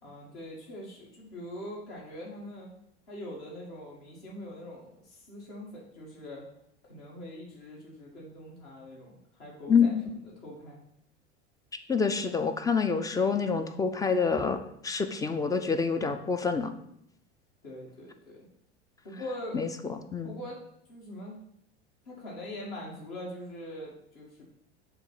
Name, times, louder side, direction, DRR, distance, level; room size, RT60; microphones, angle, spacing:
voice 1, 0.0-2.7 3.1-6.4 6.9-10.8 17.6-18.5 19.0-19.6 20.2-20.6 20.9-21.4 22.1-24.4, left 1 dB, 60° left, -5 dB, 2.3 m, -43 dB
voice 2, 9.7-10.0 11.9-16.7 19.5-19.7 20.1-20.3, left 5 dB, 10° left, 9 dB, 0.4 m, -27 dB
6.8 x 2.5 x 5.5 m, 0.71 s
hypercardioid pair, 90°, 35 cm